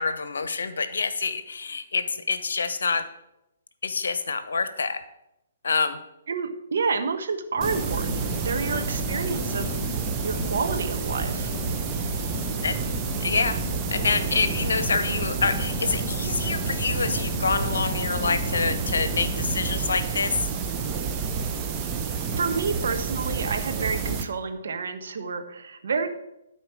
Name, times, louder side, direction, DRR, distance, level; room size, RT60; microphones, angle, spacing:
voice 1, 0.0-3.0 3.8-5.0 5.6-6.0 8.7-8.8 12.6-12.8 13.2-13.6 13.9-20.4, left 4 dB, 65° left, 12 dB, 0.9 m, -26 dB
voice 2, 6.3-9.7 10.2-11.5 22.4-26.1, right 4 dB, 60° right, 6 dB, 1.1 m, -29 dB
sound 1, 7.6-19.8, left 2 dB, 30° left, 2.3 m, -35 dB
sound 2, 7.6-24.2, right 6 dB, 20° right, 0.9 m, -29 dB
12.0 x 4.4 x 6.1 m, 0.85 s
figure-of-eight pair, 125°, 0 cm